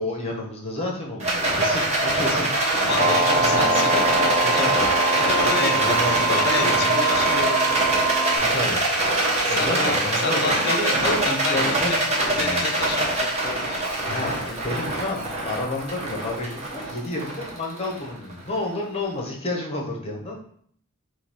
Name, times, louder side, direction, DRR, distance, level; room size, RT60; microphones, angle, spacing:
voice 1, 0.0-4.1 4.4-4.9 5.2-7.0 8.4-9.1 9.5-12.8 14.0-20.4, left 2 dB, 30° left, 0 dB, 0.9 m, -30 dB
Rattle, 1.2-18.6, right 2 dB, 30° right, 0.9 m, -24 dB
voice 2, 2.8-7.8 9.4-12.1 12.4-13.8, left 5 dB, 45° left, 5 dB, 0.3 m, -30 dB
sound 1, 3.0-8.4, right 4 dB, 15° right, 0.5 m, -24 dB
3.9 x 2.6 x 4.3 m, 0.62 s
head